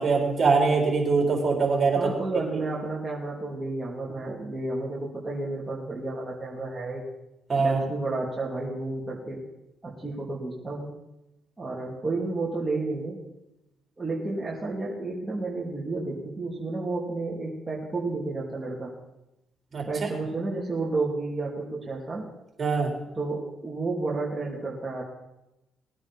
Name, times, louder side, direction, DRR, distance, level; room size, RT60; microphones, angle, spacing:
voice 1, 0.0-2.1 7.5-7.8 19.7-19.8 22.6-22.9, right 4 dB, 40° right, 0 dB, 4.0 m, -22 dB
voice 2, 1.9-7.0 7.6-9.4 9.8-10.9 11.6-13.2 14.0-18.9 19.8-22.3 23.1-25.0, right 3 dB, 20° right, -5 dB, 2.8 m, -31 dB
19.5 x 9.6 x 4.2 m, 0.92 s
cardioid pair, 90°, 0 cm